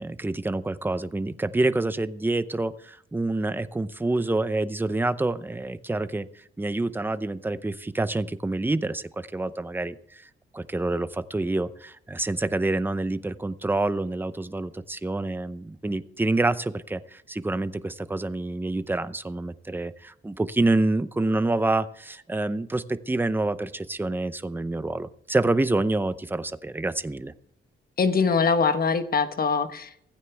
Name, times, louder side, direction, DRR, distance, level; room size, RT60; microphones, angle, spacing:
voice 1, 0.0-6.3 6.6-10.2 10.5-27.3, right 2 dB, 10° right, 13 dB, 0.7 m, -27 dB
voice 2, 28.0-30.0, left 5 dB, 45° left, 9 dB, 1.3 m, -23 dB
15.5 x 14.5 x 3.4 m, 0.68 s
wide cardioid pair, 135°, 21 cm